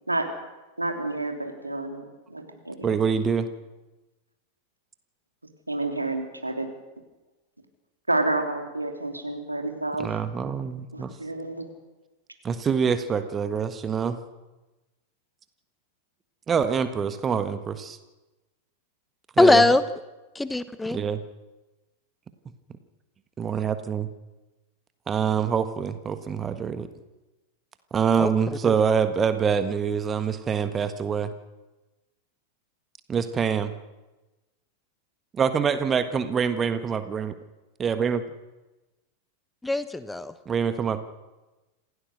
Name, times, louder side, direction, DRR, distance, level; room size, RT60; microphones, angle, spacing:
voice 1, 0.8-3.0 5.7-6.7 8.1-10.2 10.9-11.7, right 2 dB, 85° right, 5 dB, 2.9 m, -29 dB
voice 2, 2.8-3.5 10.0-11.1 12.4-14.2 16.5-18.0 19.4-19.6 20.9-21.2 23.4-24.1 25.1-26.9 27.9-31.3 33.1-33.7 35.3-37.3 37.8-38.2 40.4-41.0, right 6 dB, 20° right, 11 dB, 1.5 m, -25 dB
voice 3, 19.4-19.8 20.3-21.0 28.2-28.3 28.6-28.7 39.6-40.3, left 2 dB, 5° left, 14 dB, 1.0 m, -20 dB
27.0 x 16.5 x 6.5 m, 1.1 s
figure-of-eight pair, 90°, 0 cm